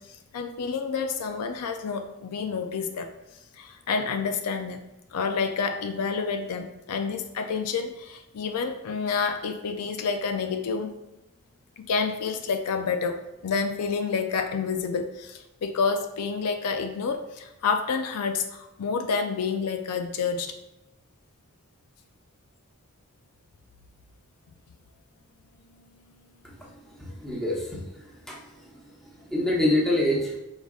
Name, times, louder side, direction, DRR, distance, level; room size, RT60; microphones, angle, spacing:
voice 1, 0.3-3.1 3.6-4.8 5.1-10.9 11.8-20.5, left 5 dB, 85° left, 6 dB, 0.4 m, -29 dB
voice 2, 26.9-28.7 29.0-30.4, left 1 dB, ahead, -5 dB, 0.9 m, -27 dB
4.6 x 3.9 x 2.4 m, 0.97 s
head